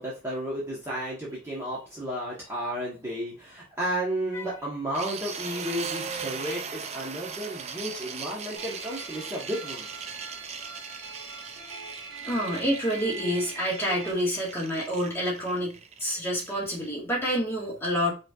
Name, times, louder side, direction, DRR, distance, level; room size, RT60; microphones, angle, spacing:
voice 1, 0.0-9.9, equal, 10° right, -6 dB, 1.1 m, -33 dB
sound 1, 4.9-16.9, right 6 dB, 30° right, 0.4 m, -39 dB
sound 2, 8.5-14.1, right 5 dB, 65° right, 1.1 m, -42 dB
voice 2, 12.3-18.1, equal, 10° left, -5 dB, 1.6 m, -28 dB
5.0 x 3.3 x 2.4 m, 0.31 s
head